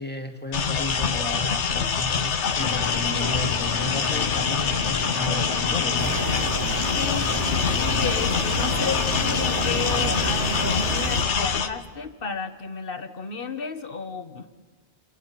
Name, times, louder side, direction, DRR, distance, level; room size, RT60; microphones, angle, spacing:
voice 1, 0.0-6.2, equal, 10° left, 2 dB, 2.1 m, -33 dB
sound 1, 0.5-11.7, left 6 dB, 85° left, 1.4 m, -25 dB
sound 2, 2.6-10.3, left 3 dB, 20° right, 2.7 m, -33 dB
sound 3, 6.0-11.2, right 2 dB, 85° right, 2.1 m, -30 dB
voice 2, 6.9-7.3 7.7-14.7, left 5 dB, 55° left, 10 dB, 1.5 m, -32 dB
29.5 x 29.0 x 5.9 m, 1.3 s
omnidirectional pair, 1.2 m